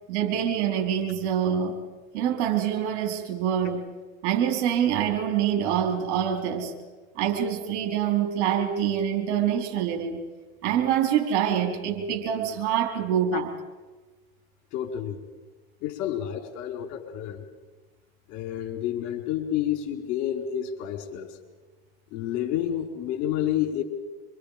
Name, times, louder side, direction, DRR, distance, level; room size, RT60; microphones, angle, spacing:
voice 1, 0.1-1.8 2.1-3.9 4.2-6.7 7.1-10.2 10.6-13.5, right 9 dB, 60° right, 4 dB, 4.5 m, -25 dB
voice 2, 14.7-15.2 15.8-17.4 18.3-21.4 22.1-23.8, left 11 dB, 55° left, 4 dB, 4.6 m, -29 dB
26.5 x 25.0 x 5.1 m, 1.3 s
hypercardioid pair, 105°, 35 cm